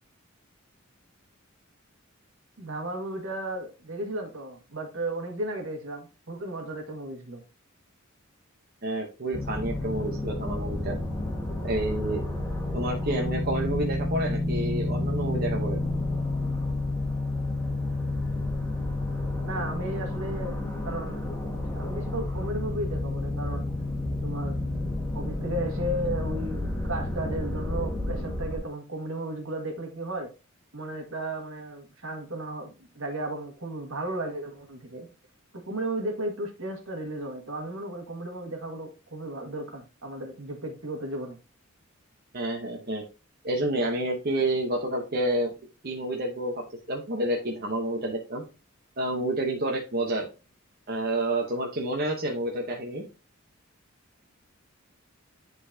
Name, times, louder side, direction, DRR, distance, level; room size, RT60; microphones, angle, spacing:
voice 1, 2.6-7.4 19.4-20.6 20.8-21.3 21.7-23.7 24.2-24.6 25.1-30.3 30.7-35.1 35.5-41.4, right 1 dB, 75° right, 1.8 m, -34 dB
voice 2, 8.8-11.0 11.6-12.3 12.7-15.8 42.3-43.0 43.4-45.5 45.8-48.4 49.0-50.3 50.9-53.0, right 1 dB, 45° right, 1.0 m, -29 dB
sound 1, 9.3-28.6, left 2 dB, 15° left, 1.3 m, -30 dB
10.5 x 4.1 x 2.8 m
head